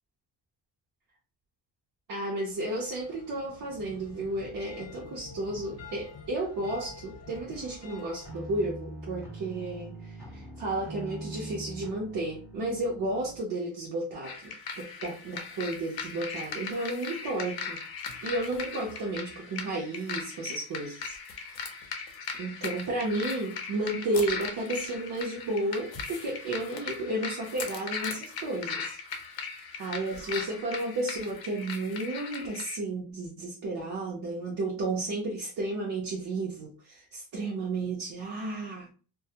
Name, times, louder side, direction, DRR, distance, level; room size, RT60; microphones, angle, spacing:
voice 1, 2.1-17.8 18.2-21.2 21.5-21.7 22.4-29.0 29.8-38.9, right 2 dB, 50° right, -4 dB, 0.7 m, -33 dB
sound 1, 2.4-8.3, left 3 dB, 35° left, 0.8 m, -48 dB
sound 2, 8.2-13.4, right 1 dB, 5° right, 0.6 m, -43 dB
sound 3, 14.2-32.8, left 5 dB, 55° left, 0.6 m, -38 dB
2.3 x 2.0 x 2.7 m, 0.39 s
cardioid pair, 155°, 44 cm